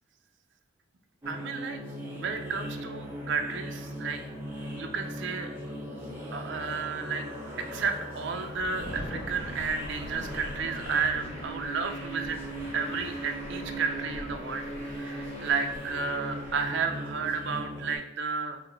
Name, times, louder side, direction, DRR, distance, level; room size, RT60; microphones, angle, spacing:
sound 1, 1.2-18.0, equal, 10° right, 0.8 m, -39 dB
voice 1, 1.3-1.8 2.2-4.2 4.8-5.5 6.3-7.2 7.7-12.4 12.7-18.6, right 5 dB, 55° right, 6 dB, 0.5 m, -32 dB
sound 2, 8.5-13.9, equal, 65° left, 0.9 m, -44 dB
Truck, 9.3-16.7, left 1 dB, 30° left, 1.2 m, -46 dB
4.4 x 2.7 x 3.8 m, 0.82 s
head